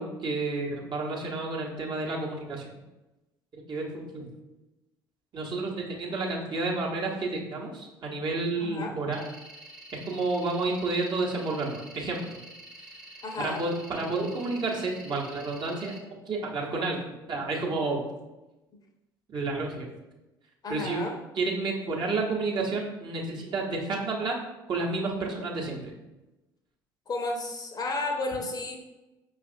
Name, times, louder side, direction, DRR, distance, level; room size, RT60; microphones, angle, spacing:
voice 1, 0.0-2.8 3.7-4.3 5.3-9.2 10.0-12.2 13.4-17.0 17.3-18.0 19.3-19.9 20.7-24.4 24.7-25.8, right 3 dB, 40° right, -2 dB, 0.9 m, -30 dB
voice 2, 8.6-9.0 13.2-13.6 20.6-21.2 27.1-28.8, left 2 dB, 35° left, 2 dB, 0.7 m, -32 dB
sound 1, 9.1-16.0, right 1 dB, 5° right, 0.7 m, -48 dB
5.3 x 2.4 x 2.6 m, 1.0 s
figure-of-eight pair, 55°, 12 cm